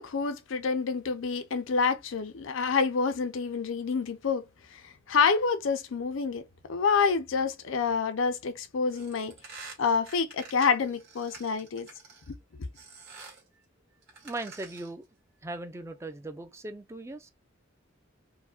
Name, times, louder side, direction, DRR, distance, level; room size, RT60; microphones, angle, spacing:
voice 1, 0.0-4.4 4.7-6.4 6.7-9.3 9.8-11.9 12.3-12.4, left 5 dB, 75° left, 0.5 m, -27 dB
sound 1, 8.9-12.3 12.7-13.5 14.0-15.0, right 4 dB, 55° right, 1.7 m, -48 dB
voice 2, 14.2-15.1 15.4-17.3, right 2 dB, 15° right, 0.4 m, -38 dB
4.6 x 2.1 x 2.4 m
head